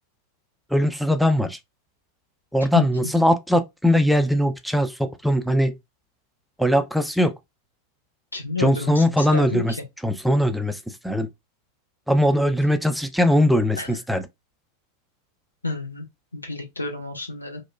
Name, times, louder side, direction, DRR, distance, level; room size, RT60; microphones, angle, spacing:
voice 1, 0.7-1.6 2.5-5.7 6.6-7.3 8.6-9.7 10.0-11.3 12.1-14.2, equal, ahead, 0.3 m, -20 dB
voice 2, 2.8-3.1 8.3-9.6 13.8-13.9 15.6-16.0 16.3-17.6, left 3 dB, 80° left, 0.5 m, -30 dB
2.9 x 2.0 x 2.4 m
figure-of-eight pair, 90°, 0 cm